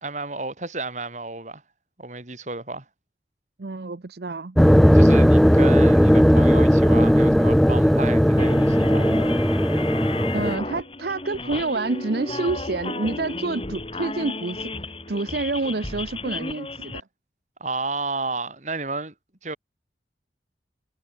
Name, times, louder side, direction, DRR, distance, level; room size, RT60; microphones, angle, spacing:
voice 1, 0.0-1.6 2.0-2.8 4.9-9.1 17.6-19.1 19.4-19.6, right 3 dB, 40° right, 2.6 m, -32 dB
voice 2, 3.6-4.6 10.3-14.7 15.1-17.0, right 3 dB, 60° right, 0.7 m, -28 dB
sound 1, 4.6-10.6, equal, ahead, 0.6 m, -16 dB
sound 2, 8.4-17.0, left 2 dB, 30° left, 3.4 m, -33 dB
head